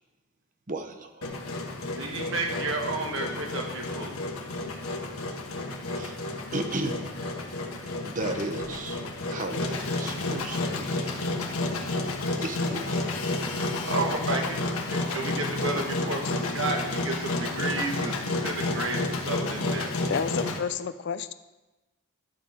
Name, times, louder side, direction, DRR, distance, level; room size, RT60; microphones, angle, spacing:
voice 1, 0.7-1.3 5.9-6.2 6.5-7.0 8.0-9.0 9.3-11.1 12.4-13.0, right 2 dB, 40° right, 6 dB, 0.8 m, -34 dB
Engine, 1.2-20.6, left 2 dB, 90° left, 1.3 m, -31 dB
voice 2, 1.9-4.1 13.8-14.6 14.9-19.9, right 2 dB, 65° right, 2 dB, 1.1 m, -31 dB
voice 3, 20.1-21.3, left 6 dB, 50° left, 12 dB, 0.4 m, -30 dB
12.0 x 6.5 x 4.8 m, 1.1 s
head